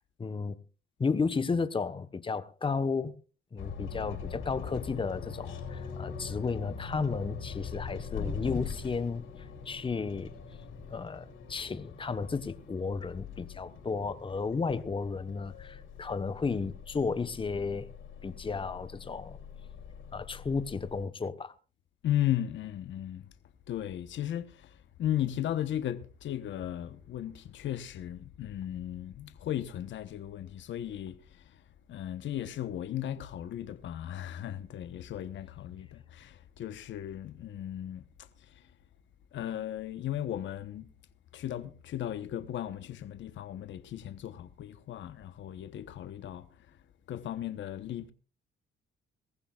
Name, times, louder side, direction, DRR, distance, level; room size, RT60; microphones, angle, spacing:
voice 1, 0.2-0.6 1.0-3.1 3.5-10.3 10.9-17.9 18.2-19.4 20.1-21.5, left 4 dB, 25° left, 1.1 m, -33 dB
sound 1, 3.6-21.0, left 6 dB, 85° left, 6.9 m, -42 dB
voice 2, 22.0-23.3 23.7-31.6 31.9-38.7 39.3-40.9 41.3-46.8 47.1-48.1, left 11 dB, 70° left, 1.1 m, -36 dB
22.5 x 15.0 x 2.4 m
cardioid pair, 90°, 20 cm